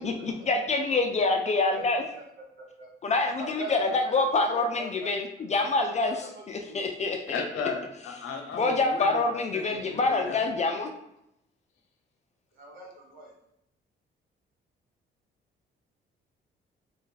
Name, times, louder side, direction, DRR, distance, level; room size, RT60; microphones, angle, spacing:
voice 1, 0.0-2.0 3.0-6.1 6.5-7.2 8.5-10.9, left 3 dB, 35° left, 5 dB, 0.4 m, -26 dB
voice 2, 2.6-2.9 3.4-5.1 5.4-5.5 6.0-6.1 6.5-6.8 12.5-13.3, right 1 dB, 80° right, -4 dB, 1.0 m, -41 dB
voice 3, 7.3-10.4, left 4 dB, 85° left, 3 dB, 0.7 m, -36 dB
3.1 x 2.4 x 3.9 m, 0.80 s
cardioid pair, 90°, 20 cm